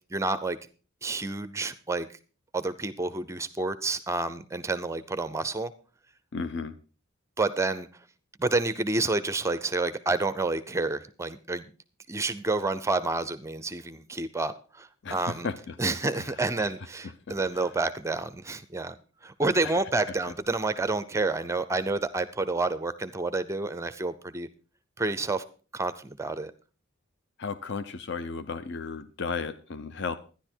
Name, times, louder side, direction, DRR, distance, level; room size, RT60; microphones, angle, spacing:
voice 1, 0.1-0.6 1.0-2.1 2.5-5.7 7.4-7.9 8.4-11.7 12.1-15.5 15.8-19.0 19.2-24.5 25.0-25.4 25.7-26.5, right 3 dB, 15° right, 13 dB, 0.5 m, -29 dB
voice 2, 6.3-6.7 15.0-15.8 16.2-16.3 17.3-17.7 19.6-19.7 27.4-30.2, left 4 dB, 55° left, 11 dB, 0.6 m, -34 dB
12.5 x 10.5 x 4.4 m, 0.36 s
head